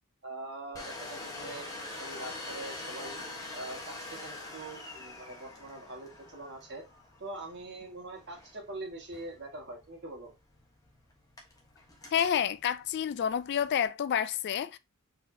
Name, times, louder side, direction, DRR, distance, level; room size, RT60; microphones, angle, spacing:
voice 1, 0.2-3.2 3.5-6.8 7.2-10.3, right 2 dB, 50° right, 2.0 m, -43 dB
Domestic sounds home sounds, 0.7-13.9, left 2 dB, 15° left, 1.2 m, -45 dB
voice 2, 12.1-14.8, left 8 dB, 50° left, 0.3 m, -29 dB
4.8 x 4.0 x 2.8 m
head